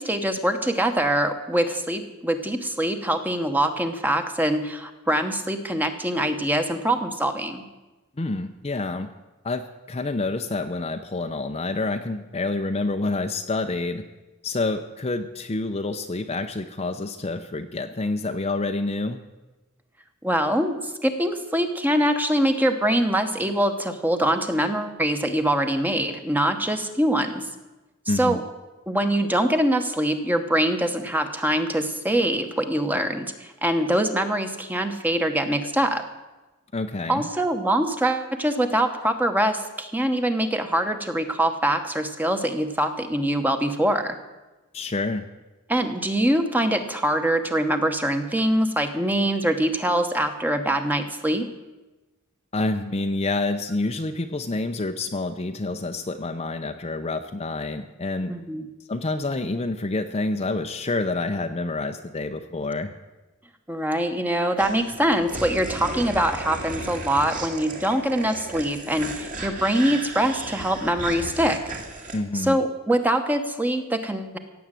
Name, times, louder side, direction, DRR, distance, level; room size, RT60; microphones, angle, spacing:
voice 1, 0.0-7.6 20.2-27.5 28.2-28.4 28.9-36.0 37.1-44.2 45.7-51.5 58.3-58.7 63.7-71.6 72.3-74.4, right 1 dB, 10° right, 7 dB, 1.1 m, -24 dB
voice 2, 8.2-9.1 9.4-14.0 14.4-19.2 28.1-28.4 36.7-37.3 44.7-45.2 52.5-58.3 58.9-62.9 72.1-72.6, left 2 dB, 30° left, 6 dB, 0.6 m, -28 dB
sound 1, 64.6-72.2, right 2 dB, 35° right, 2.3 m, -35 dB
16.5 x 8.6 x 7.6 m, 1.1 s
head